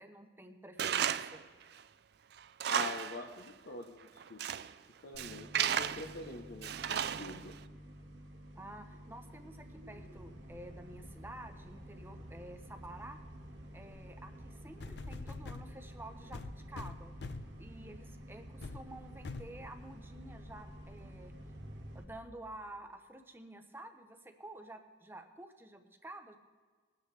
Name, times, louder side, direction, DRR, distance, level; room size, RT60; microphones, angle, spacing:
voice 1, 0.0-1.4 8.6-13.2 13.7-17.1 17.6-21.3 21.9-26.4, right 1 dB, 10° right, 6 dB, 0.8 m, -50 dB
Tools, 0.8-1.4 1.8-1.9 2.4-3.2 3.5-3.6 4.2-4.7 5.2-6.2 6.6-7.5, right 9 dB, 65° right, 0.4 m, -34 dB
voice 2, 2.7-4.7 5.0-7.5, left 2 dB, 80° left, 1 dB, 0.9 m, -45 dB
sound 1, 5.1-22.0, equal, 80° right, 1.5 m, -50 dB
sound 2, 14.3-14.4 14.8-15.7 16.3-17.6 18.1-18.2 18.6-18.8 19.2-19.6 20.3-20.4, left 3 dB, 65° left, 0.5 m, -44 dB
21.5 x 9.6 x 3.3 m, 1.5 s
head